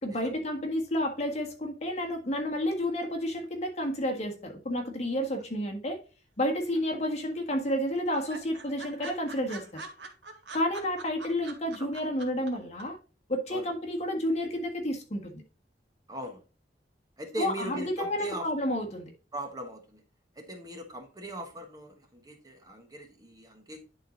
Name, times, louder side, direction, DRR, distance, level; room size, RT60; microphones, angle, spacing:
voice 1, 0.0-6.0 6.4-9.8 10.5-13.0 13.3-15.4 17.4-19.1, left 1 dB, 40° left, 1.6 m, -30 dB
sound 1, 6.4-7.1 7.4-7.5 7.7-7.8 8.1-12.5 12.8-12.9, right 3 dB, 85° right, 1.7 m, -43 dB
voice 2, 16.1-16.4 17.2-18.5 19.3-20.0 20.4-23.8, right 1 dB, 20° right, 1.3 m, -39 dB
10.5 x 3.9 x 4.0 m
head